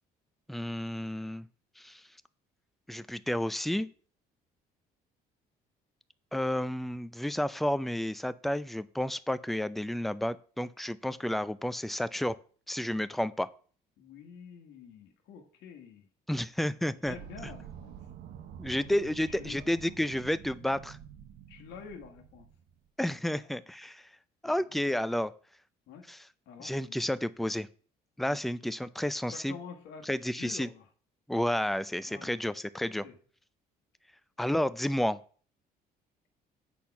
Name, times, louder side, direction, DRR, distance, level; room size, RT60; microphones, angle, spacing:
voice 1, 0.5-1.4 1.8-2.0 2.9-3.9 6.3-12.4 12.7-13.5 16.3-17.2 18.6-21.0 23.0-24.0 24.4-25.3 26.1-26.3 26.6-27.7 28.2-29.6 30.0-30.7 31.3-33.0 34.4-35.2, left 1 dB, ahead, 15 dB, 0.4 m, -31 dB
voice 2, 14.0-16.1 17.1-17.9 18.6-18.9 19.3-19.6 21.5-22.5 23.3-23.4 24.4-24.5 25.9-26.0 26.5-27.0 28.2-28.4 29.3-30.9 32.1-32.4 32.8-33.2, left 7 dB, 80° left, 3 dB, 1.4 m, -48 dB
sound 1, 17.0-22.9, right 9 dB, 70° right, 0.9 m, -48 dB
8.3 x 4.3 x 5.7 m, 0.43 s
cardioid pair, 110°, 17 cm